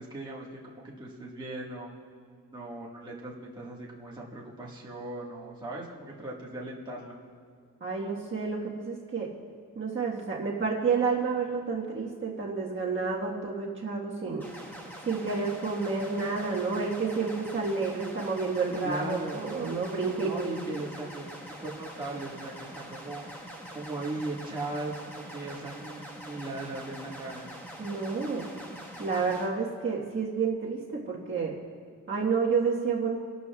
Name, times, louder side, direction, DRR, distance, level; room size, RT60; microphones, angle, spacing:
voice 1, 0.0-1.9 2.5-7.2 18.8-19.4 20.2-23.2 23.7-27.5, right 2 dB, 15° right, -5 dB, 1.5 m, -38 dB
voice 2, 7.8-9.3 9.7-14.4 15.0-20.6 27.8-28.5 29.0-31.6 32.1-33.2, right 4 dB, 35° right, -4 dB, 1.4 m, -30 dB
sound 1, 14.4-29.5, equal, 5° left, 1.3 m, -44 dB
27.0 x 12.5 x 2.3 m, 2.1 s
wide cardioid pair, 175°, 33 cm